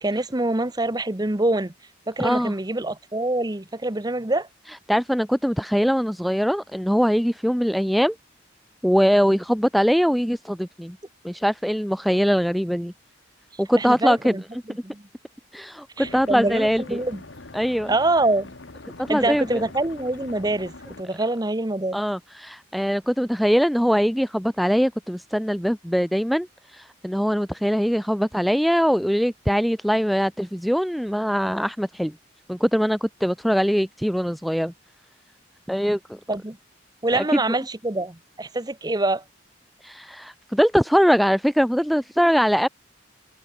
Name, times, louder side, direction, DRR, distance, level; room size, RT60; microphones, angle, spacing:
voice 1, 0.0-1.7 2.1-4.5 13.8-14.4 14.8-15.0 16.0-17.2 17.9-18.5 19.1-22.0 36.3-36.6 37.0-39.2, right 2 dB, 20° right, 1.0 m, -25 dB
voice 2, 2.2-2.5 4.7-8.2 8.8-11.0 11.2-12.9 13.6-14.4 15.5-17.0 17.5-17.9 19.0-19.6 21.9-32.2 32.5-34.7 35.7-36.2 37.1-37.4 39.8-42.7, equal, ahead, 0.4 m, -22 dB
sound 1, 16.0-21.0, left 2 dB, 70° left, 1.7 m, -43 dB
head